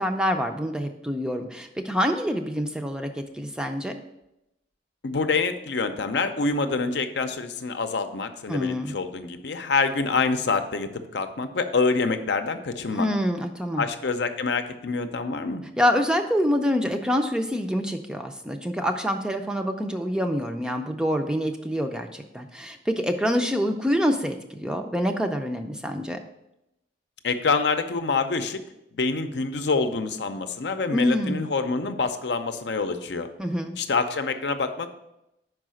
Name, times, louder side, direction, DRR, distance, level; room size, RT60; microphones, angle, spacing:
voice 1, 0.0-4.0 8.5-8.9 12.9-13.8 15.8-26.2 30.9-31.4 33.4-33.8, equal, 5° right, 4 dB, 0.4 m, -26 dB
voice 2, 5.0-13.1 13.8-15.6 27.2-28.6 28.9-33.3 33.8-34.9, left 4 dB, 75° left, 8 dB, 0.6 m, -26 dB
5.6 x 4.8 x 6.2 m, 0.87 s
head